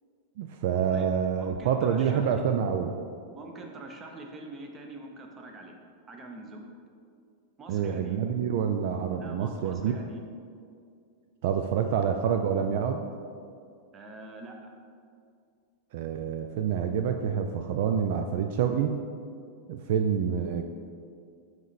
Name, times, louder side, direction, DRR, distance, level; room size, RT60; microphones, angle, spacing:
voice 1, 0.4-3.0 7.7-9.9 11.4-13.0 15.9-18.9 19.7-20.6, right 7 dB, 60° right, 6 dB, 0.3 m, -27 dB
voice 2, 1.4-2.4 3.3-5.8 6.1-6.6 7.6-8.2 9.2-10.2 13.9-14.7, right 2 dB, 25° right, 2 dB, 0.8 m, -44 dB
9.2 x 3.2 x 4.0 m, 2.3 s
supercardioid pair, 145°, 0 cm